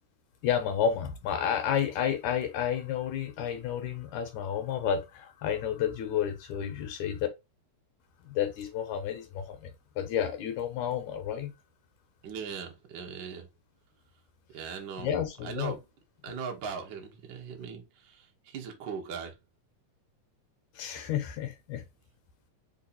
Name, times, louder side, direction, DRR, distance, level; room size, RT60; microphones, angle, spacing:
voice 1, 0.4-7.3 8.2-11.5 15.0-15.8 20.7-21.8, left 8 dB, 75° left, 2.0 m, -31 dB
voice 2, 12.2-13.5 14.5-15.1 15.4-15.8 16.2-19.4, right 6 dB, 70° right, 1.1 m, -39 dB
4.6 x 2.8 x 4.0 m
omnidirectional pair, 3.6 m